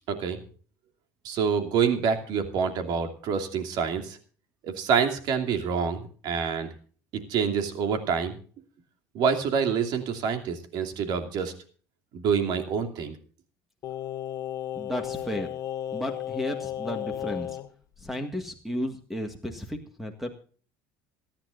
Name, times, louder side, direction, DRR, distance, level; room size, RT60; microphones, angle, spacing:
voice 1, 0.1-0.4 1.2-4.2 4.6-6.7 7.3-8.4 9.1-11.5 12.1-13.1, right 6 dB, 60° right, 6 dB, 2.6 m, -27 dB
Singing, 13.8-17.7 18.0-18.1, left 11 dB, 45° left, 1.3 m, -34 dB
voice 2, 14.8-15.5 15.9-17.6 18.0-20.4, left 1 dB, 5° right, 6 dB, 1.8 m, -33 dB
27.5 x 10.5 x 2.6 m, 0.42 s
supercardioid pair, 110°, 8 cm